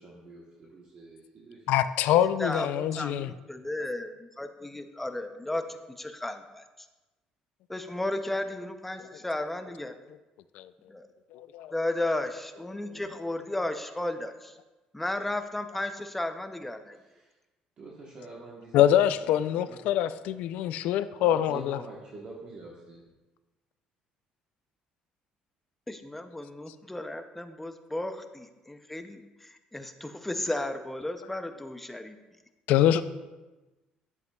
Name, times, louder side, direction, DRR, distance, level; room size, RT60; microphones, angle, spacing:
voice 1, 0.0-1.7 12.9-13.2 17.1-17.3 17.8-19.9 21.2-23.0, right 2 dB, 40° right, -3 dB, 1.1 m, -46 dB
voice 2, 1.7-3.3 10.6-10.7 11.3-11.7 18.7-21.8 32.7-33.0, left 11 dB, 75° left, 13 dB, 0.3 m, -24 dB
voice 3, 2.4-6.9 7.7-9.9 10.9-11.1 11.7-14.6 14.9-17.0 25.9-32.2, left 1 dB, 5° left, 8 dB, 0.5 m, -34 dB
10.5 x 7.5 x 2.3 m, 1.1 s
cardioid pair, 135°, 2 cm